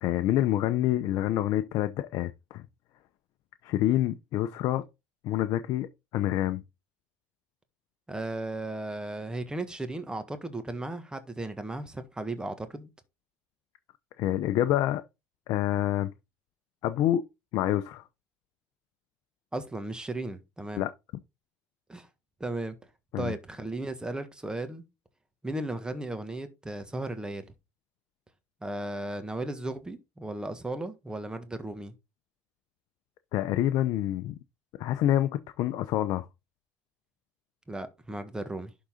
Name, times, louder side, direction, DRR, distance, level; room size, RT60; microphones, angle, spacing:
voice 1, 0.0-2.6 3.6-4.8 5.2-6.6 14.2-15.0 15.5-16.1 16.8-17.2 17.5-18.0 20.8-20.9 23.1-23.3 33.3-34.4 34.8-35.3 35.6-36.3, left 13 dB, 65° left, 0.6 m, -27 dB
voice 2, 8.1-12.9 19.5-20.9 21.9-22.1 22.4-22.8 23.2-24.8 25.4-27.5 28.6-31.9 37.7-38.7, right 2 dB, 10° right, 1.5 m, -35 dB
11.5 x 4.0 x 3.8 m
supercardioid pair, 90°, 7 cm